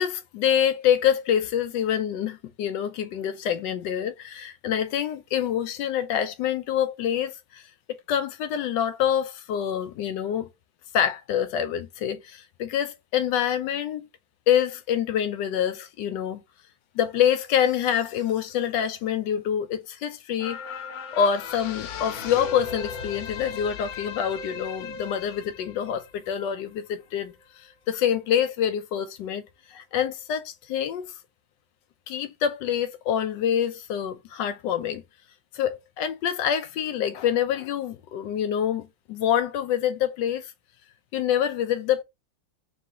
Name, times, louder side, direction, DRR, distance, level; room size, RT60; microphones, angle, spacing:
voice 1, 0.0-10.5 10.9-14.1 14.5-16.4 16.9-20.6 21.1-27.3 27.9-29.4 29.7-31.1 32.1-35.0 35.5-40.5 41.1-42.0, left 9 dB, 75° left, 1.2 m, -26 dB
sound 1, 20.4-27.0 27.5-27.6, left 6 dB, 90° left, 1.5 m, -37 dB
3.8 x 3.0 x 3.5 m
omnidirectional pair, 2.1 m